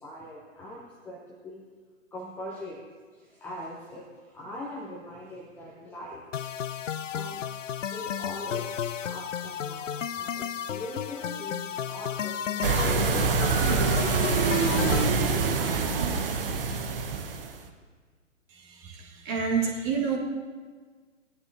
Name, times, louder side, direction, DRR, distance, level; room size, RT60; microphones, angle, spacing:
voice 1, 0.0-1.6 2.1-2.8 3.1-6.2 6.8-7.5 7.9-8.7 9.0-13.7 14.1-16.8, left 1 dB, 5° left, -5 dB, 0.7 m, -41 dB
sound 1, 6.3-15.0, left 8 dB, 75° left, 0.5 m, -33 dB
sound 2, 12.6-17.6, right 4 dB, 45° right, 1.1 m, -25 dB
voice 2, 18.8-20.2, right 6 dB, 25° right, -1 dB, 1.7 m, -28 dB
18.5 x 11.0 x 2.6 m, 1.5 s
figure-of-eight pair, 130°, 38 cm